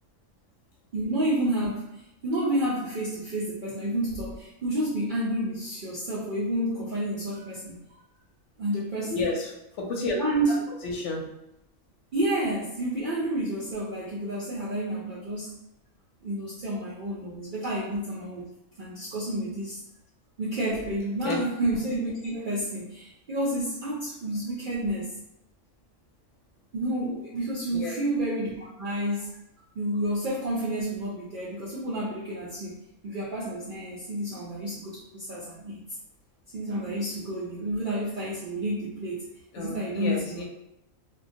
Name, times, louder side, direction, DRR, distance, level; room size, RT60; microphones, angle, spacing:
voice 1, 0.9-8.0 8.6-9.3 10.2-10.6 12.1-15.6 16.2-18.5 18.8-19.8 20.4-25.2 26.7-29.3 29.7-35.8 36.5-39.3 39.6-40.4, right 1 dB, 70° right, -7 dB, 0.5 m, -30 dB
voice 2, 9.0-9.5 9.8-10.2 10.8-11.2 21.2-21.4 27.7-27.9 39.5-40.4, left 3 dB, 70° left, 0 dB, 0.8 m, -30 dB
2.2 x 2.2 x 2.6 m, 0.89 s
omnidirectional pair, 1.3 m